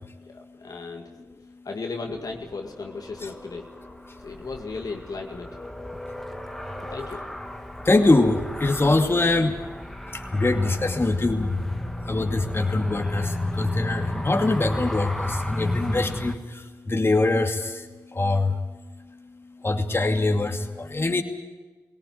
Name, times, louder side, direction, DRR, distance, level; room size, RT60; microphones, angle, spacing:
voice 1, 0.3-1.1 1.7-3.7 4.2-5.5 6.9-7.2, left 4 dB, 55° left, 2 dB, 2.1 m, -35 dB
Car, 2.4-16.3, left 1 dB, 5° left, 2.1 m, -34 dB
voice 2, 7.8-9.5 10.3-11.7 12.1-17.9 18.1-18.6 19.6-21.2, left 2 dB, 30° left, 4 dB, 2.5 m, -23 dB
19.0 x 18.0 x 9.5 m, 1.3 s
supercardioid pair, 45°, 7 cm